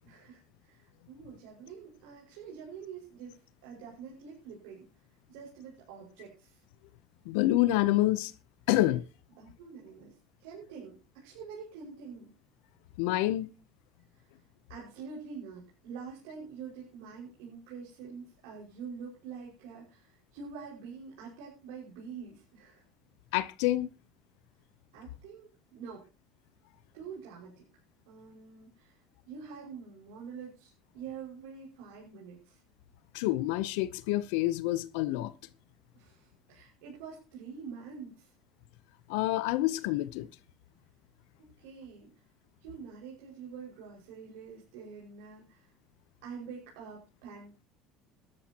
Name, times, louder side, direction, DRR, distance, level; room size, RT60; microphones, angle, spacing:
voice 1, 0.0-4.9 5.3-6.6 9.3-12.3 14.1-14.3 14.7-22.8 24.9-26.1 26.9-27.6 28.1-32.6 35.9-38.3 41.6-42.2 42.6-45.7 46.2-47.6, right 6 dB, 85° right, 5.8 m, -46 dB
voice 2, 7.2-8.3 8.7-9.0 13.0-13.5 23.3-23.9 33.1-35.3 39.1-40.3, left 16 dB, 80° left, 0.8 m, -27 dB
18.0 x 13.0 x 3.0 m
cardioid pair, 140°, 0 cm